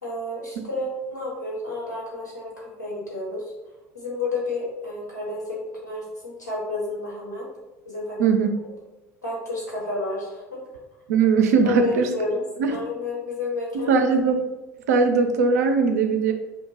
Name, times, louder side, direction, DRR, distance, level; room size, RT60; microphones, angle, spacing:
voice 1, 0.0-3.5 3.9-7.5 7.9-8.3 9.2-10.6 11.6-13.9, left 2 dB, 90° left, -6 dB, 1.0 m, -30 dB
voice 2, 11.1-12.1 12.6-12.7 13.9-14.4 14.9-16.3, right 5 dB, 65° right, 5 dB, 0.4 m, -19 dB
2.8 x 2.1 x 4.0 m, 1.1 s
figure-of-eight pair, 65°, 9 cm